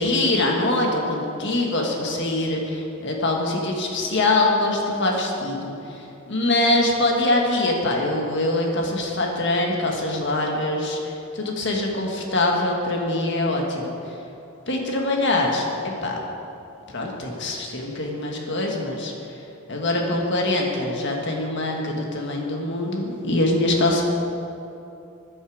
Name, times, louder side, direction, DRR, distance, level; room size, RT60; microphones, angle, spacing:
voice 1, 0.0-13.9 14.7-15.7 16.0-16.2 16.9-19.1 19.7-24.0, left 2 dB, 55° left, 0 dB, 1.8 m, -23 dB
14.0 x 9.9 x 5.0 m, 2.8 s
head